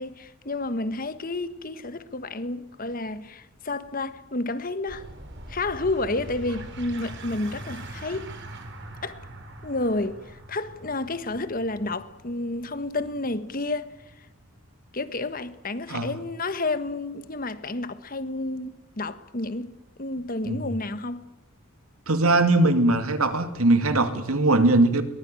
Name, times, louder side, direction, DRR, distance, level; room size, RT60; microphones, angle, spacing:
voice 1, 0.0-5.1 5.5-8.3 9.0-9.2 9.6-14.3 14.9-19.7 20.0-21.3, left 2 dB, 40° left, 1.4 m, -30 dB
sound 1, 4.9-16.0, right 1 dB, 55° right, 4.3 m, -43 dB
voice 2, 22.1-25.0, right 2 dB, 90° right, 2.5 m, -20 dB
22.0 x 20.5 x 9.1 m
head